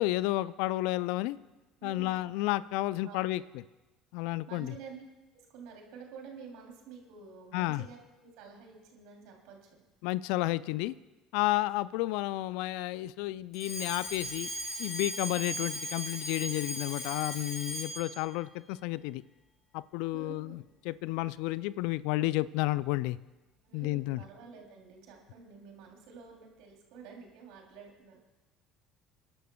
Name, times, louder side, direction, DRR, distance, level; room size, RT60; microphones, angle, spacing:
voice 1, 0.0-1.4 1.8-3.6 4.1-4.7 7.5-7.8 10.0-10.9 11.3-14.5 14.8-19.2 19.7-23.2 23.7-24.2, left 18 dB, 70° left, 19 dB, 0.3 m, -31 dB
voice 2, 1.8-2.4 3.0-3.5 4.5-5.0 5.3-9.8 20.1-20.6 23.6-28.2, right 6 dB, 70° right, 1 dB, 3.0 m, -50 dB
Alarm, 13.5-18.2, left 1 dB, 45° left, 4.7 m, -38 dB
28.0 x 11.5 x 2.3 m, 1.1 s
hypercardioid pair, 65°, 0 cm